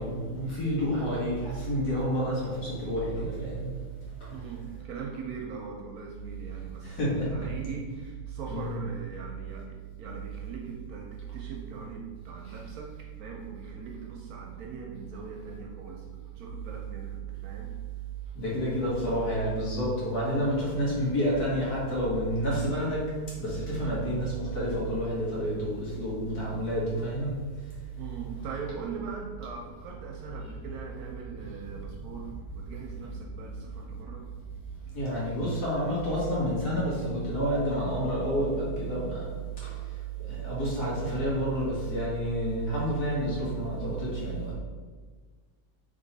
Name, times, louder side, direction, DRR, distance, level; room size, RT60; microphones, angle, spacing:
voice 1, 0.0-3.8 4.2-4.4 6.8-7.5 8.5-8.8 18.4-23.1 23.4-27.3 34.9-39.3 39.6-39.8 40.3-44.5, equal, 65° left, -7 dB, 1.9 m, -29 dB
voice 2, 4.3-12.9 13.2-17.7 28.0-34.3 44.5-44.6, right 4 dB, 70° right, 0 dB, 1.0 m, -41 dB
3.6 x 3.2 x 4.0 m, 1.4 s
omnidirectional pair, 1.8 m